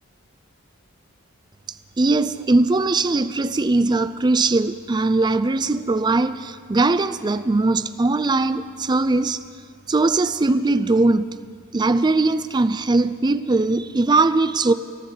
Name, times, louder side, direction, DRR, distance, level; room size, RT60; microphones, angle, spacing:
voice 1, 2.0-9.4 9.9-11.3 11.7-14.7, right 3 dB, 20° right, 0.4 m, -20 dB
24.0 x 13.0 x 3.9 m
head